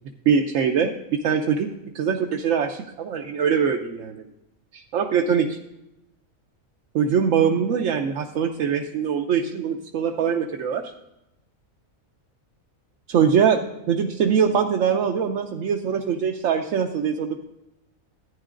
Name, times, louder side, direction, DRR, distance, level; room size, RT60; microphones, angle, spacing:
voice 1, 0.3-0.9 1.2-4.2 4.7-5.6 6.9-10.9 13.1-17.5, right 7 dB, 70° right, 3 dB, 1.0 m, -23 dB
14.0 x 9.9 x 2.5 m, 0.90 s
omnidirectional pair, 1.5 m